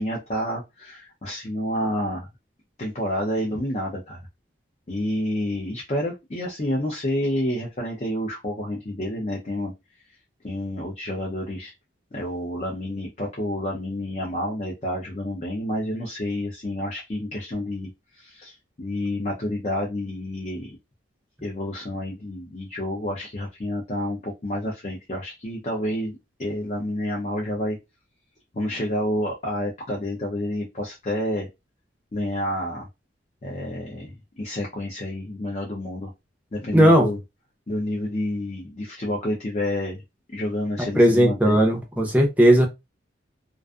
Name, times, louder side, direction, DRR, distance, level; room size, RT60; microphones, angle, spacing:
voice 1, 0.0-2.3 2.8-4.2 4.9-9.7 10.4-11.7 12.1-20.8 21.4-27.8 28.5-31.5 32.1-32.9 33.4-36.1 36.5-37.2 37.7-40.0 40.3-41.6, left 1 dB, 35° left, 0.5 m, -29 dB
voice 2, 36.7-37.1 41.0-42.7, equal, 10° right, 0.6 m, -16 dB
2.5 x 2.3 x 2.3 m
head